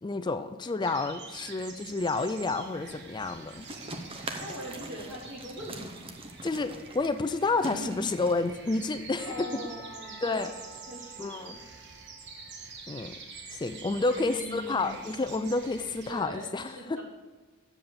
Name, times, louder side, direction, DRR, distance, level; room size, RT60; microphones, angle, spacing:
voice 1, 0.0-3.7 4.2-4.4 6.4-9.6 10.2-10.5 11.2-11.6 12.9-13.2 13.5-17.0, left 3 dB, 20° left, 10 dB, 0.4 m, -30 dB
sound 1, 0.8-16.2, right 4 dB, 55° right, 1.2 m, -47 dB
sound 2, 3.6-10.1, right 2 dB, 25° right, 0.9 m, -43 dB
voice 2, 4.4-6.0 7.6-8.0 9.2-11.6 14.1-14.9 15.9-17.0, equal, 75° right, -3 dB, 3.2 m, -42 dB
Percussion / Church bell, 9.2-13.0, right 3 dB, 10° right, 1.5 m, -51 dB
7.8 x 7.1 x 6.8 m, 1.3 s
head